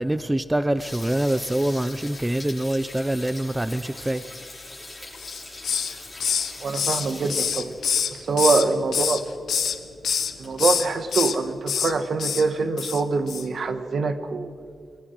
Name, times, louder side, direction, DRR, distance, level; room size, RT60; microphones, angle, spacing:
voice 1, 0.0-4.2, right 1 dB, 10° right, 0.6 m, -25 dB
sound 1, 0.8-8.3 8.6-8.7 9.0-9.1 9.7-9.8 10.0-11.1, left 2 dB, 15° left, 7.4 m, -41 dB
Hiss, 5.2-5.9 6.2-8.7 8.9-9.8 10.0-10.3 10.6-11.3 11.7-11.9 12.2-12.4 12.8-13.0 13.3-13.4, left 7 dB, 85° left, 1.2 m, -25 dB
voice 2, 6.6-7.7 8.1-9.2 10.4-14.5, right 4 dB, 60° right, 1.4 m, -24 dB
30.0 x 21.0 x 4.7 m
wide cardioid pair, 110°, 0 cm